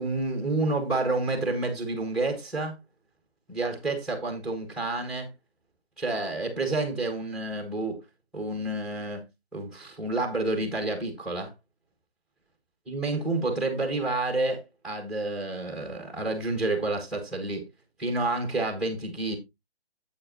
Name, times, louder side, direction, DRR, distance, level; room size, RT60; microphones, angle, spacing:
voice 1, 0.0-2.8 3.5-5.3 6.0-8.0 8.3-9.2 9.5-11.5 12.9-17.6 18.0-19.4, right 2 dB, ahead, 1.5 m, -29 dB
8.7 x 8.4 x 3.0 m
figure-of-eight pair, 145°, 32 cm